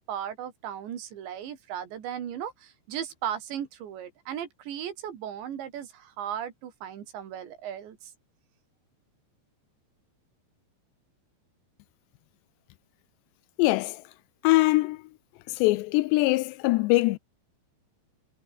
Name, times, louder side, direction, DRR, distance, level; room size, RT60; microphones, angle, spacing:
voice 1, 0.0-8.1, right 9 dB, 75° right, 5.0 m, -36 dB
voice 2, 13.6-14.0 14.4-15.0 15.5-17.2, left 20 dB, 80° left, 2.7 m, -22 dB
omnidirectional pair, 5.2 m